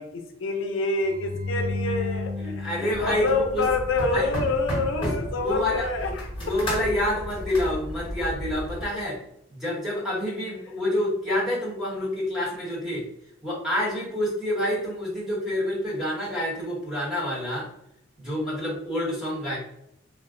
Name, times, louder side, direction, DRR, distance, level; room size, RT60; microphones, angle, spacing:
voice 1, 0.0-6.5, left 3 dB, 80° left, 4 dB, 0.5 m, -27 dB
sound 1, 1.0-4.2, left 3 dB, 20° right, 0.4 m, -33 dB
voice 2, 2.4-3.6 4.1-4.3 5.0-6.1 6.4-9.2 9.5-13.0 13.4-17.7 18.2-19.6, left 1 dB, ahead, -7 dB, 1.1 m, -28 dB
sound 2, 2.9-8.9, equal, 25° left, 1.0 m, -33 dB
2.3 x 2.2 x 3.6 m, 0.77 s
head